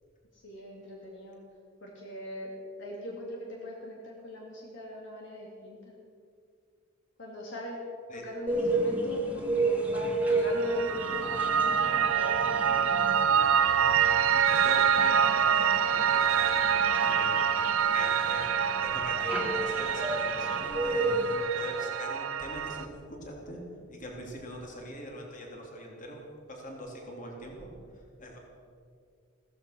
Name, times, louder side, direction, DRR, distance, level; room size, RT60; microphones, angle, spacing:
voice 1, 0.3-1.4 1.8-2.5 2.8-6.0 7.2-7.8 8.1-12.8, equal, 65° left, -2 dB, 2.6 m, -41 dB
sound 1, 8.5-21.3, right 2 dB, 10° right, 2.0 m, -32 dB
Piano, 10.5-22.9, right 7 dB, 85° right, 1.0 m, -26 dB
voice 2, 14.3-17.5 17.9-18.4 18.8-23.6 23.9-26.2 26.5-28.4, equal, 40° left, 0 dB, 3.5 m, -43 dB
15.5 x 14.5 x 6.2 m, 2.3 s
head